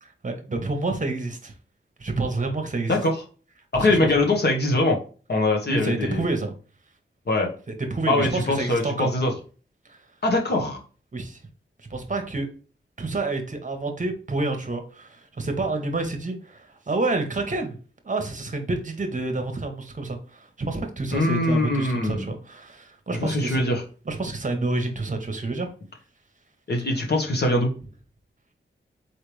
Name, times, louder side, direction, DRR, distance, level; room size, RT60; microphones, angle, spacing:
voice 1, 0.0-1.5 2.0-3.0 3.7-4.0 5.7-6.5 7.9-9.1 9.9-10.0 11.1-11.4 11.9-12.5 13.0-17.8 18.0-23.6 24.1-25.7, right 2 dB, 40° right, 5 dB, 1.1 m, -28 dB
voice 2, 3.7-5.0 5.3-6.2 7.3-7.5 8.1-9.3 10.2-10.8 21.1-22.2 23.1-23.8 26.7-27.7, left 2 dB, 55° left, 0 dB, 1.4 m, -22 dB
4.6 x 3.3 x 3.2 m, 0.38 s
wide cardioid pair, 90°, 20 cm